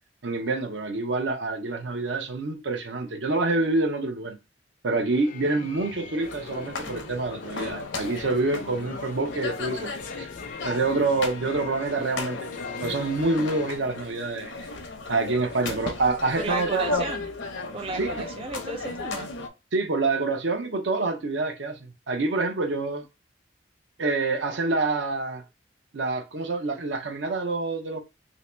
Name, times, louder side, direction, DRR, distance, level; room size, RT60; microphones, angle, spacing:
voice 1, 0.2-4.4 4.8-9.9 10.2-10.3 10.6-12.5 12.8-14.5 15.1-17.0 18.0-18.1 19.7-23.0 24.0-25.4 25.9-28.0, right 3 dB, 75° right, 0.7 m, -27 dB
sound 1, 5.1-13.8, left 5 dB, 45° left, 0.4 m, -42 dB
sound 2, 6.2-19.5, left 3 dB, 85° left, 0.7 m, -35 dB
voice 2, 16.3-17.3 17.7-19.3, right 3 dB, 30° right, 0.4 m, -33 dB
2.9 x 2.8 x 3.3 m
head